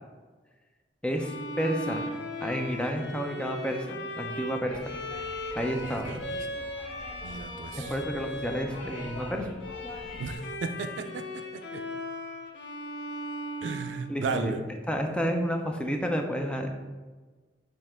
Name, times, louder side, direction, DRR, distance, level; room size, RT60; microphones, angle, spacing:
voice 1, 1.0-2.0 2.4-4.8 5.5-6.2 7.9-9.5 14.1-14.5 14.9-16.7, equal, 5° left, 3 dB, 0.4 m, -30 dB
Bowed string instrument, 1.2-14.6, left 1 dB, 65° left, 0.6 m, -38 dB
sound 1, 4.7-10.4, left 1 dB, 50° left, 0.9 m, -44 dB
voice 2, 5.8-6.4 7.2-7.9 10.2-11.8 13.6-14.6, right 4 dB, 80° right, 8 dB, 0.4 m, -35 dB
5.4 x 2.8 x 3.5 m, 1.3 s
head